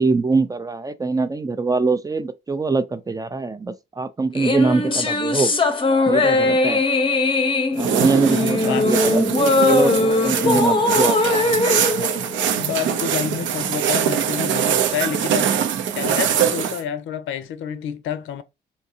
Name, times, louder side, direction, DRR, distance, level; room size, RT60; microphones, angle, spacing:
voice 1, 0.0-5.5 6.1-6.8 7.8-11.2, right 3 dB, 20° right, 0.3 m, -22 dB
sound 1, 4.3-12.9, left 3 dB, 25° left, 0.6 m, -20 dB
sound 2, 7.8-16.8, right 9 dB, 70° right, 0.5 m, -23 dB
voice 2, 10.4-10.8 12.5-15.5 15.9-18.4, left 9 dB, 80° left, 0.5 m, -28 dB
3.6 x 2.7 x 2.7 m
cardioid pair, 90°, 20 cm